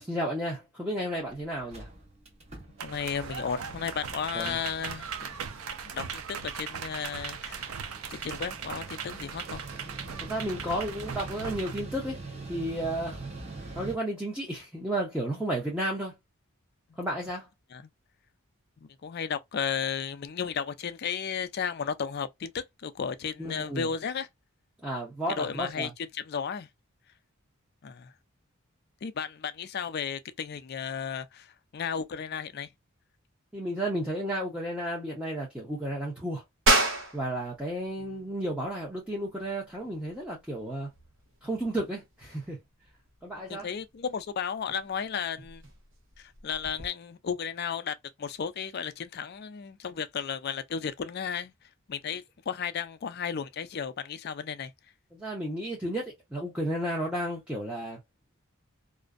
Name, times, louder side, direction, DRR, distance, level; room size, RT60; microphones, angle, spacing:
voice 1, 0.0-1.9 4.3-4.6 10.2-12.2 12.5-13.2 13.7-16.1 17.0-17.5 23.4-23.9 24.8-25.9 33.5-36.4 37.1-40.9 41.4-42.6 43.2-43.7 55.1-58.0, right 1 dB, 5° right, 0.7 m, -32 dB
Mechanical fan, 0.9-1.0 1.3-1.4 1.6-14.0, right 3 dB, 30° right, 0.8 m, -44 dB
voice 2, 2.8-5.3 5.8-7.7 8.1-9.6 16.9-17.0 17.7-17.9 18.8-24.3 25.3-26.7 27.8-28.1 29.0-32.7 38.0-38.1 43.5-45.6 46.2-54.7, left 7 dB, 50° left, 0.4 m, -34 dB
sound 1, 2.8-11.8, right 7 dB, 90° right, 0.4 m, -39 dB
sound 2, 36.7-46.9, right 2 dB, 65° right, 0.8 m, -34 dB
2.5 x 2.0 x 2.4 m
head